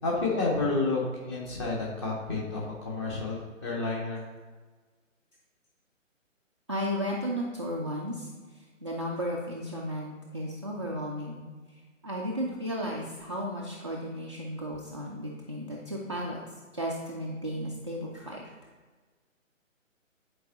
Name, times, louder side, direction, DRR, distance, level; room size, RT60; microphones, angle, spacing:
voice 1, 0.0-4.2, left 3 dB, 20° left, -3 dB, 1.3 m, -30 dB
voice 2, 6.7-8.3 8.8-11.4 12.0-16.4 16.7-18.4, equal, 25° right, -4 dB, 0.4 m, -34 dB
9.8 x 4.6 x 2.9 m, 1.4 s
figure-of-eight pair, 140°, 39 cm